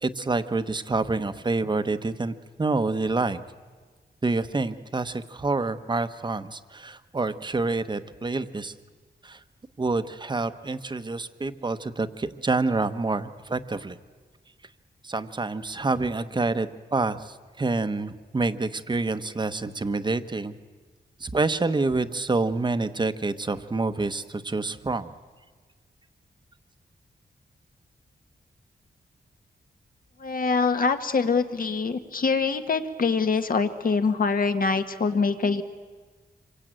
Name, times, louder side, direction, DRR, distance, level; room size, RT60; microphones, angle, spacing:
voice 1, 0.0-3.4 4.2-8.7 9.2-9.4 9.8-14.0 15.0-20.5 21.2-25.1, right 3 dB, 25° right, 10 dB, 1.0 m, -27 dB
voice 2, 30.2-35.6, left 4 dB, 55° left, 8 dB, 1.7 m, -24 dB
27.0 x 23.5 x 9.0 m, 1.4 s
wide cardioid pair, 140°, 17 cm